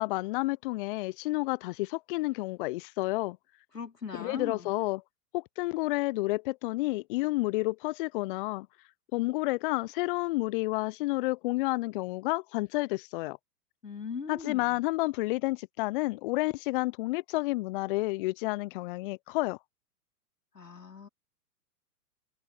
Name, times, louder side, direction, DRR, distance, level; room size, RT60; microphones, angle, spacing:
voice 1, 0.0-3.4 4.1-5.0 5.3-8.7 9.1-13.4 14.3-19.6, left 21 dB, 35° left, 0.6 m, -30 dB
voice 2, 3.7-4.7 13.8-14.8 20.5-21.1, left 5 dB, 85° left, 4.1 m, -39 dB
figure-of-eight pair, 105°, 47 cm